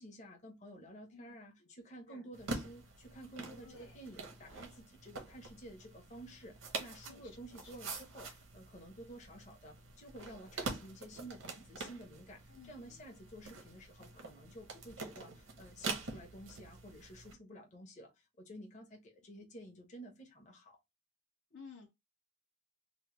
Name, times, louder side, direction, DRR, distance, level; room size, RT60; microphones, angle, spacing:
voice 1, 0.0-20.7, right 1 dB, 35° left, 0.9 m, -52 dB
sound 1, 2.3-17.3, right 3 dB, 80° right, 0.9 m, -46 dB
voice 2, 3.6-4.0 7.0-7.7 12.5-13.0 21.5-21.9, left 5 dB, 60° left, 0.7 m, -56 dB
3.0 x 2.2 x 3.0 m
head